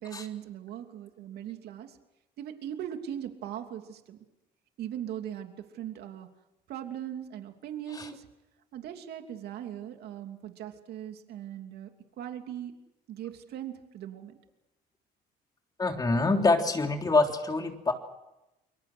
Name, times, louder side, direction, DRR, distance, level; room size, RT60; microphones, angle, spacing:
voice 1, 0.0-2.0 2.4-4.2 4.8-6.3 6.7-8.3 8.7-11.9 12.2-12.7 13.1-14.4, right 10 dB, 70° right, 5 dB, 3.0 m, -39 dB
voice 2, 15.8-17.9, left 3 dB, 20° left, 3 dB, 3.5 m, -25 dB
29.0 x 23.0 x 6.4 m, 0.93 s
cardioid pair, 110°, 17 cm